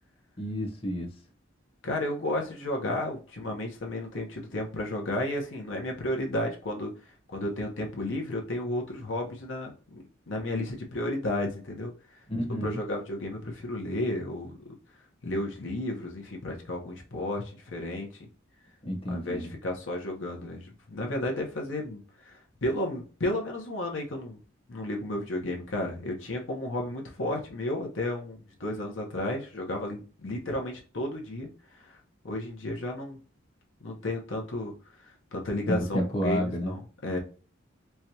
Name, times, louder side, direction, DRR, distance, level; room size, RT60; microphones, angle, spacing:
voice 1, 0.4-1.2 12.3-12.8 18.8-19.5 35.7-36.7, equal, 30° left, 1 dB, 1.0 m, -30 dB
voice 2, 1.8-11.9 12.6-14.6 15.2-18.1 19.1-24.4 24.7-32.0 32.2-33.2 33.8-37.2, left 1 dB, 70° left, 2 dB, 0.8 m, -33 dB
4.5 x 2.3 x 2.8 m, 0.37 s
head